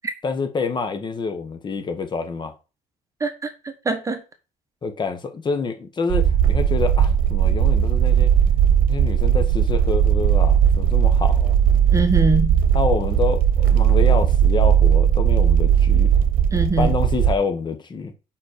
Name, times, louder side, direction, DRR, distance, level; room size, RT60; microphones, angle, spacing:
voice 1, 0.2-2.5 4.8-8.3 8.9-11.5 12.7-16.1 16.8-18.1, left 4 dB, 30° left, 1.3 m, -27 dB
voice 2, 3.2-4.2 11.9-12.6 16.5-16.9, right 2 dB, 20° right, 1.2 m, -23 dB
sound 1, 6.1-17.3, right 9 dB, 80° right, 0.9 m, -17 dB
5.4 x 5.2 x 6.6 m
cardioid pair, 120°, 14 cm